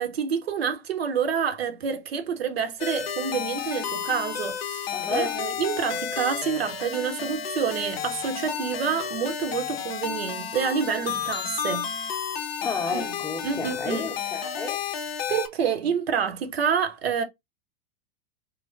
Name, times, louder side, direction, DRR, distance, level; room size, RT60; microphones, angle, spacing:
voice 1, 0.0-12.0 12.9-13.1 13.4-14.1 15.3-17.2, right 7 dB, 75° right, 0.6 m, -28 dB
sound 1, 2.8-15.5, left 8 dB, 75° left, 0.6 m, -32 dB
voice 2, 4.9-5.4 12.6-14.8, left 4 dB, 10° left, 0.5 m, -31 dB
3.2 x 2.4 x 2.3 m
figure-of-eight pair, 85°, 31 cm